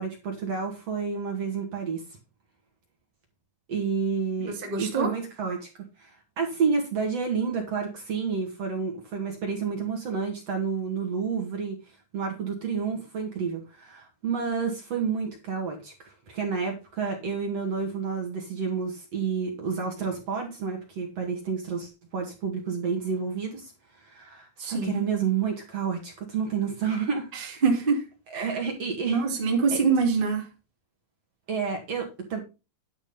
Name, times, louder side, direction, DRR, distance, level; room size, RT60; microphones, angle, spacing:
voice 1, 0.0-2.0 3.7-27.6 28.3-29.2 29.7-29.8 31.5-32.4, right 5 dB, 50° right, 2.5 m, -30 dB
voice 2, 4.4-5.1 24.6-25.1 27.3-28.1 28.3-28.6 29.1-30.5, right 4 dB, 15° right, 2.0 m, -25 dB
10.5 x 5.2 x 5.4 m
omnidirectional pair, 4.3 m